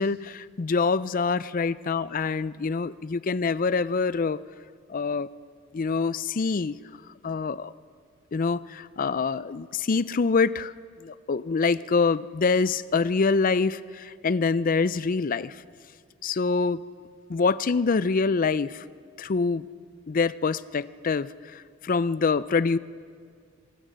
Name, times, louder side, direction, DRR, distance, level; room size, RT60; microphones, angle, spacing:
voice 1, 0.0-4.4 4.9-5.3 5.7-6.7 7.2-7.7 8.3-10.7 11.0-15.6 16.2-16.8 17.3-18.8 19.2-19.7 20.1-22.8, left 4 dB, 40° left, 17 dB, 0.4 m, -25 dB
27.0 x 15.5 x 6.4 m, 2.2 s
head